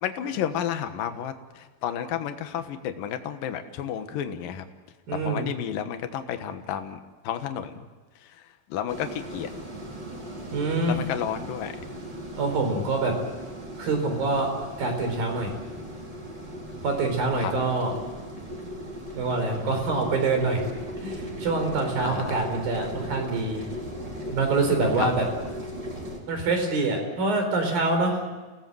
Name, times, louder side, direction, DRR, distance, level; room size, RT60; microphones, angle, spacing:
voice 1, 0.0-4.7 5.1-7.0 7.2-7.9 8.7-9.5 10.9-11.7 17.4-17.5 22.0-22.3 25.0-25.1, left 9 dB, 70° left, 8 dB, 2.9 m, -31 dB
voice 2, 5.1-5.5 10.5-11.0 12.4-13.1 13.8-14.5 14.8-15.5 16.8-17.9 19.2-20.6 21.0-23.7 24.3-25.3 26.3-28.2, right 3 dB, 65° right, 4 dB, 5.9 m, -25 dB
sound 1, 8.9-26.2, equal, 30° right, 4.7 m, -38 dB
29.5 x 18.0 x 7.8 m, 1.3 s
omnidirectional pair, 4.4 m